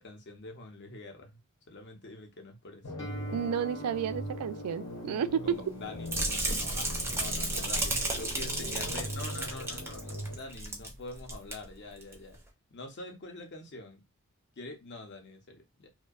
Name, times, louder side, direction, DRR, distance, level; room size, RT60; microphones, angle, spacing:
voice 1, 0.0-1.4 1.7-2.8 5.4-12.4 12.7-14.0 14.6-15.9, left 2 dB, 50° left, 0.7 m, -45 dB
sound 1, 2.8-10.3, left 1 dB, 85° left, 0.9 m, -41 dB
Guitar, 3.0-10.7, right 1 dB, 20° left, 0.7 m, -48 dB
voice 2, 3.3-5.4, right 7 dB, 90° right, 0.3 m, -32 dB
sound 2, 6.1-10.9 11.2-11.5 12.0-12.1, right 2 dB, 10° right, 0.4 m, -33 dB
2.6 x 2.2 x 2.3 m
head